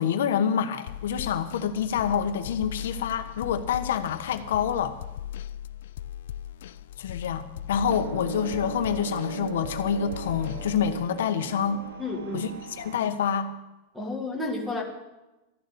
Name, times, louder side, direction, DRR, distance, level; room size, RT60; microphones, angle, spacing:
voice 1, 0.0-5.0 7.0-11.9 12.3-13.5, left 8 dB, 90° left, 8 dB, 1.2 m, -27 dB
sound 1, 0.9-11.1, left 11 dB, 70° left, 0.4 m, -39 dB
sound 2, 7.9-13.0, right 6 dB, 70° right, 1.3 m, -38 dB
voice 2, 12.0-12.5 13.9-14.8, left 2 dB, ahead, 1 dB, 1.9 m, -31 dB
13.5 x 6.9 x 9.7 m, 1.0 s
supercardioid pair, 175°, 0 cm